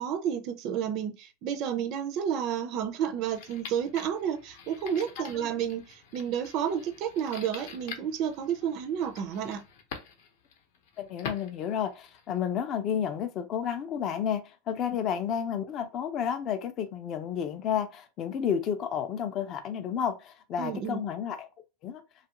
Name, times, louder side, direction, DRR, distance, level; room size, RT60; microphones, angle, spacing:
voice 1, 0.0-9.6 20.6-21.0, right 8 dB, 35° right, 0.4 m, -31 dB
sound 1, 3.3-12.4, left 6 dB, 55° left, 0.7 m, -46 dB
voice 2, 11.0-21.5 21.8-22.0, left 8 dB, 30° left, 0.4 m, -31 dB
2.9 x 2.4 x 2.8 m
supercardioid pair, 170°, 0 cm